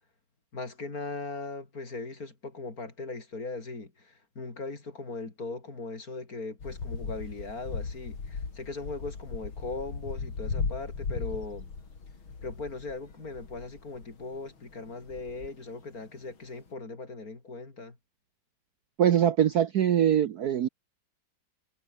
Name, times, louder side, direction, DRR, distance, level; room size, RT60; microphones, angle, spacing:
voice 1, 0.5-11.7 12.4-18.0, left 3 dB, 45° left, 4.1 m, -39 dB
sound 1, 6.6-14.4 14.7-15.5 16.2-16.3 16.5-16.6, left 5 dB, 90° left, 4.2 m, -37 dB
voice 2, 19.0-20.7, right 10 dB, 60° right, 1.2 m, -23 dB
omnidirectional pair, 2.2 m